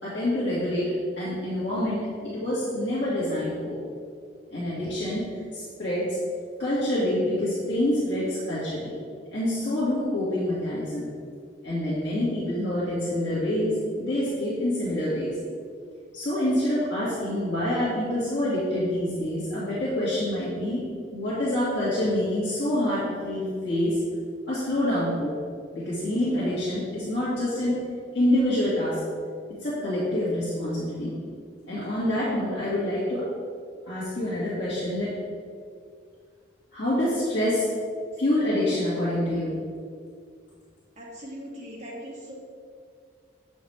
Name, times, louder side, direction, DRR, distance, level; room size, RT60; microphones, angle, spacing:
voice 1, 0.0-3.8 4.5-6.2 6.6-8.9 9.3-11.1 11.6-15.3 16.1-24.0 24.5-25.3 25.7-27.8 28.1-29.0 29.6-31.2 31.7-33.3 33.9-35.1 36.7-37.7 38.2-39.6, left 1 dB, 70° left, -11 dB, 2.0 m, -26 dB
voice 2, 41.0-42.3, equal, 35° right, -6 dB, 1.9 m, -40 dB
7.9 x 6.3 x 3.4 m, 2.1 s
head